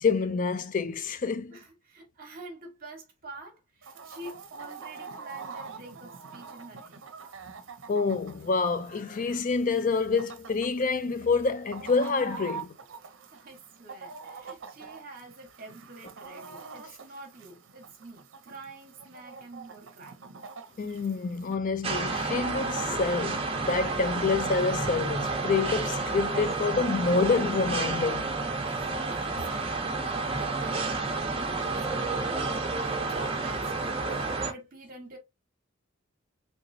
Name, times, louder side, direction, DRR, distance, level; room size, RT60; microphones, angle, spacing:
voice 1, 0.0-1.6 7.9-12.7 20.8-28.3, left 4 dB, 40° left, 0.4 m, -27 dB
voice 2, 1.5-7.1 13.0-20.3 28.6-35.2, right 2 dB, 45° right, 0.9 m, -47 dB
Chicken rooster, 3.8-21.6, right 5 dB, 70° right, 0.6 m, -45 dB
sound 1, 21.8-34.5, right 3 dB, 30° right, 0.7 m, -30 dB
3.3 x 2.9 x 2.6 m
head